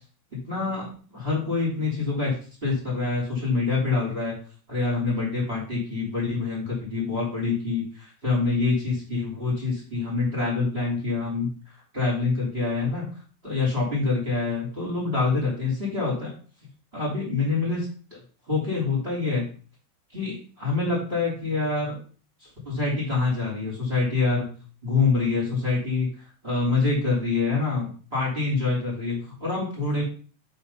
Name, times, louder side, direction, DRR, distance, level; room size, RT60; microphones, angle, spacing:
voice 1, 0.5-2.3 2.6-4.3 4.7-11.5 11.9-13.1 13.4-16.3 16.9-18.2 18.5-19.5 20.1-22.0 22.4-24.5 24.8-30.0, left 3 dB, 15° right, -4 dB, 3.1 m, -26 dB
6.1 x 5.6 x 5.7 m, 0.39 s
omnidirectional pair, 5.5 m